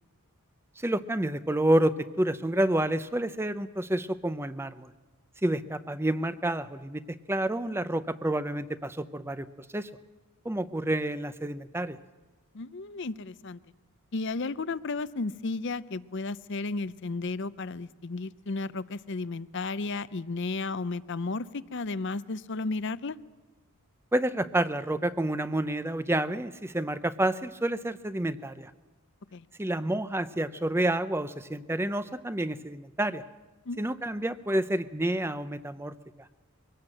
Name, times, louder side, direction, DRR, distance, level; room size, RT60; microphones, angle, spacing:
voice 1, 0.8-4.9 5.4-9.9 10.4-12.0 24.1-28.7 29.6-33.2 33.8-35.9, right 1 dB, 10° right, 13 dB, 0.6 m, -29 dB
voice 2, 12.5-13.6 14.1-23.2 29.3-29.4 33.7-33.8, left 3 dB, 55° left, 16 dB, 0.6 m, -33 dB
23.5 x 18.0 x 7.7 m, 1.2 s
head